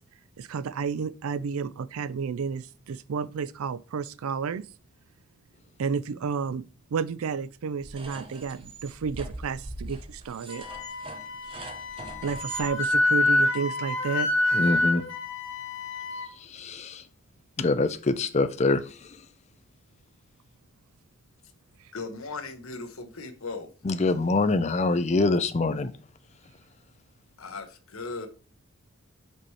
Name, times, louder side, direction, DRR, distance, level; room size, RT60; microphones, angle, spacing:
voice 1, 0.4-4.6 5.8-6.6 6.9-10.6 12.2-14.3, right 6 dB, 85° right, 0.4 m, -31 dB
sound 1, 7.8-12.7, right 2 dB, 25° right, 0.7 m, -41 dB
Wind instrument woodwind instrument, 10.5-16.3, left 2 dB, 60° left, 1.5 m, -27 dB
voice 2, 14.5-15.0 16.5-17.0 17.6-18.8 23.9-25.9, left 3 dB, 30° left, 0.4 m, -24 dB
voice 3, 21.9-23.7 27.4-28.3, left 3 dB, 80° left, 1.0 m, -37 dB
5.2 x 4.7 x 4.2 m
head